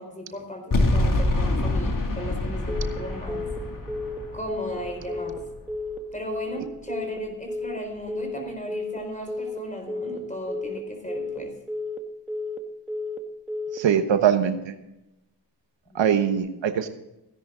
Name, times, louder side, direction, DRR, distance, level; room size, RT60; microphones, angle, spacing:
voice 1, 0.0-3.4 4.3-5.4 6.1-11.6 15.9-16.0, equal, 15° left, 3 dB, 4.4 m, -36 dB
sound 1, 0.7-5.9, left 2 dB, 45° left, 2.6 m, -26 dB
Telephone, 2.7-3.0 3.3-3.6 3.9-4.2 4.5-4.8 5.1-5.4 5.7-6.0 6.3-6.6 6.9-7.2 7.5-7.8 8.1-8.4 8.7-9.0 9.3-9.6 9.9-10.2 10.5-10.8 11.1-11.4 11.7-12.0 12.3-12.6 12.9-13.2 13.5-13.8, left 3 dB, ahead, 1.6 m, -32 dB
voice 2, 13.7-14.7 15.9-16.9, right 8 dB, 85° right, 8 dB, 1.2 m, -22 dB
16.0 x 11.0 x 3.8 m, 0.90 s
cardioid pair, 80°, 43 cm